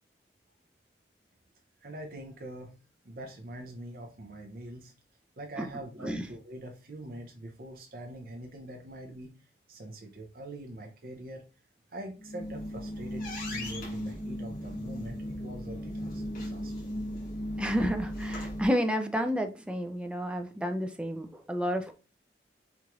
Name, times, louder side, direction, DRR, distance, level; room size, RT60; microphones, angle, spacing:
voice 1, 1.8-2.8 3.0-4.9 5.4-11.4 11.9-16.9, right 1 dB, 50° right, 2 dB, 0.6 m, -44 dB
sound 1, 12.2-18.7, equal, 50° left, 1.4 m, -36 dB
voice 2, 17.6-21.9, equal, 5° right, 5 dB, 0.4 m, -30 dB
4.4 x 2.5 x 2.9 m, 0.33 s
head